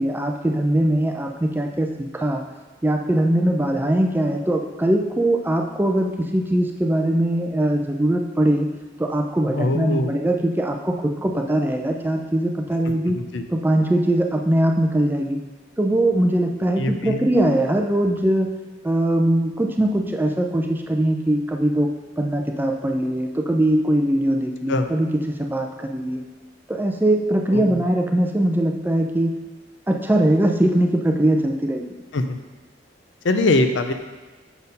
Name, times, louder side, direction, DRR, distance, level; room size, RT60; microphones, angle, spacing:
voice 1, 0.0-2.4 2.8-8.7 9.0-13.2 13.5-15.4 15.8-18.5 18.8-21.9 22.2-25.1 25.4-26.2 26.7-29.4 29.9-31.9, right 1 dB, 10° right, 2 dB, 0.4 m, -21 dB
voice 2, 9.5-10.1 13.1-13.5 16.8-17.3 24.7-24.9 27.5-27.8 32.1-32.4 33.2-33.9, left 2 dB, 70° left, 7 dB, 0.5 m, -22 dB
7.0 x 4.3 x 5.3 m, 1.2 s
head